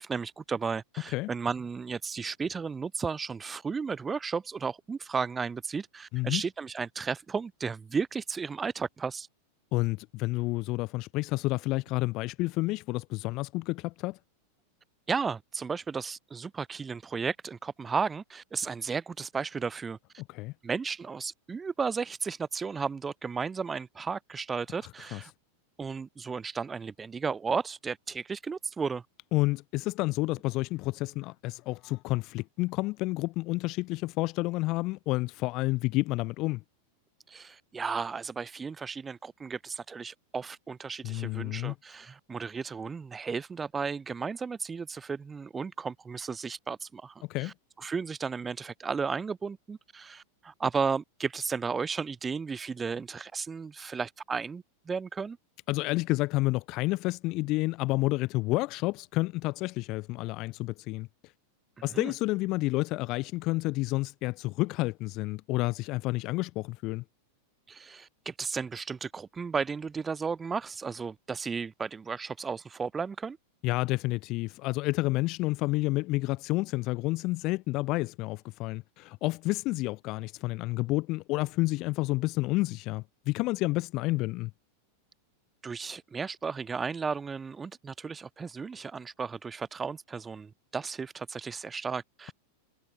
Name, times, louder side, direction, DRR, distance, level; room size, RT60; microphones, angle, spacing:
voice 1, 0.0-9.3 15.1-20.0 20.6-25.3 25.8-29.0 37.3-55.4 61.8-62.1 67.7-73.4 85.6-92.3, right 5 dB, 15° right, 6.9 m, -34 dB
voice 2, 9.7-14.2 20.3-20.5 25.1-25.2 29.3-36.6 41.0-41.7 47.3-47.5 55.7-61.1 61.8-67.0 73.6-84.5, left 21 dB, 40° left, 1.2 m, -30 dB
figure-of-eight pair, 90°, 0 cm